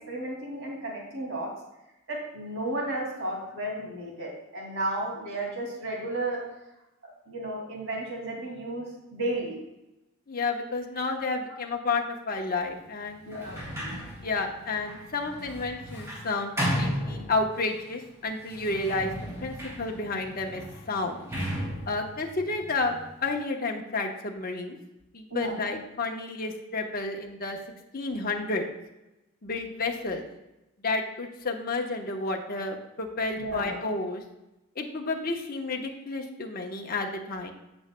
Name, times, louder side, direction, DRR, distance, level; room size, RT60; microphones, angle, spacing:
voice 1, 0.1-1.5 2.1-6.4 7.3-8.9 9.1-9.6 11.5-11.6 13.2-13.9 25.3-25.5 33.4-33.7, right 1 dB, 60° right, -2 dB, 2.5 m, -33 dB
voice 2, 10.3-13.4 14.2-19.1 19.4-20.6 20.9-21.3 21.9-24.8 25.1-27.6 27.9-28.7 29.4-30.2 30.8-34.2 34.7-37.5, left 3 dB, 45° left, 2 dB, 1.0 m, -31 dB
Sliding door, 13.3-17.8 18.4-23.3, equal, 15° right, 3.1 m, -35 dB
15.0 x 6.2 x 2.2 m, 0.95 s
head